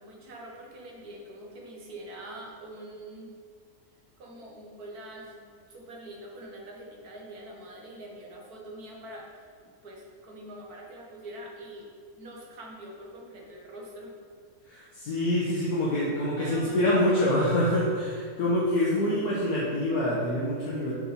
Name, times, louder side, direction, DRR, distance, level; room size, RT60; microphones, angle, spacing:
voice 1, 0.0-3.3 4.2-11.9 12.2-14.1 15.7-16.1 16.4-17.7 19.0-19.5, right 1 dB, 85° right, -1 dB, 1.9 m, -44 dB
voice 2, 14.6-20.9, left 1 dB, 80° left, -6 dB, 1.7 m, -26 dB
7.6 x 6.5 x 4.2 m, 2.1 s
omnidirectional pair, 1.6 m